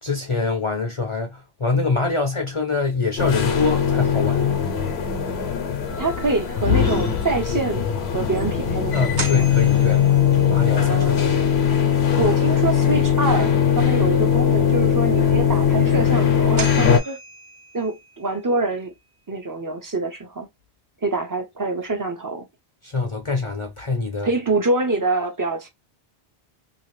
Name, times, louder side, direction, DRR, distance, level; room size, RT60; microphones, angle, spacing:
voice 1, 0.0-4.5 8.9-10.0 10.5-11.5 22.8-24.3, left 3 dB, 40° left, 0.5 m, -25 dB
sound 1, 3.2-17.0, left 8 dB, 80° left, 1.0 m, -20 dB
voice 2, 6.0-7.8 8.1-9.5 10.7-11.5 12.2-17.2 17.7-18.9 19.3-20.5 21.0-22.5 24.2-25.7, right 3 dB, 25° right, 0.5 m, -25 dB
sound 2, 7.7-7.8 8.4-8.5 9.2-10.8 15.9-16.0 16.6-18.2, right 2 dB, 50° right, 1.0 m, -35 dB
2.8 x 2.4 x 3.1 m
omnidirectional pair, 1.1 m